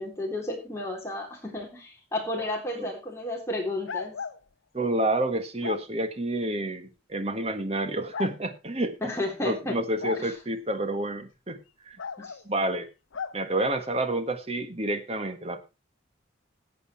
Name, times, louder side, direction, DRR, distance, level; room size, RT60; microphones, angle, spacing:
voice 1, 0.0-4.1 9.0-9.8 10.2-10.3 12.2-12.4, left 2 dB, 15° left, 0 dB, 3.7 m, -32 dB
sound 1, 3.9-4.4 5.6-5.8 7.1-7.2 8.1-8.4 10.0-10.3 12.0-12.4 13.1-13.4, left 5 dB, 90° left, 0.7 m, -35 dB
voice 2, 4.7-8.9 9.4-12.0 12.4-12.9 13.3-15.6, right 1 dB, 30° right, 8 dB, 1.4 m, -29 dB
14.5 x 8.2 x 4.5 m, 0.28 s
head